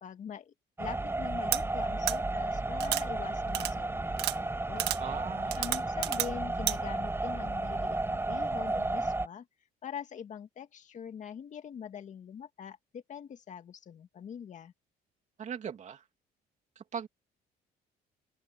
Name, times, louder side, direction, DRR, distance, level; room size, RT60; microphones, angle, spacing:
voice 1, 0.0-4.9 5.6-9.5 9.8-14.7, left 8 dB, 45° left, 2.3 m, -44 dB
sound 1, 0.8-9.3, right 2 dB, 15° right, 4.5 m, -33 dB
sound 2, 1.5-1.6 2.1-2.2 2.8-3.0 3.5-3.7 4.2-4.4 4.8-5.0 5.5-6.3 6.7-6.8, right 15 dB, 85° right, 1.7 m, -30 dB
voice 2, 5.0-5.6 15.4-16.0 16.8-17.1, right 7 dB, 45° right, 2.6 m, -39 dB
open air
cardioid pair, 110°, 17 cm